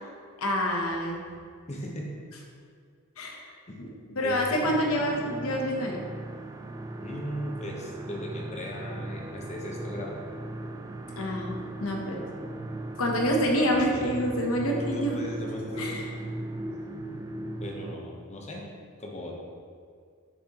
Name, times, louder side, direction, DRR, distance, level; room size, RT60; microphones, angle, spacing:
voice 1, 0.4-1.2 3.2-3.4 3.8-3.9 4.1-6.0 11.2-12.2 13.0-15.2 15.8-16.1, equal, 75° left, 0 dB, 1.0 m, -27 dB
voice 2, 1.7-2.1 3.7-3.9 4.2-4.6 7.0-10.1 14.8-16.0 16.3-16.5 17.6-18.6 19.0-19.3, left 1 dB, 30° left, -2 dB, 1.0 m, -37 dB
sound 1, 4.6-17.9, right 2 dB, 15° right, 0.3 m, -38 dB
6.6 x 6.1 x 3.0 m, 2.1 s
head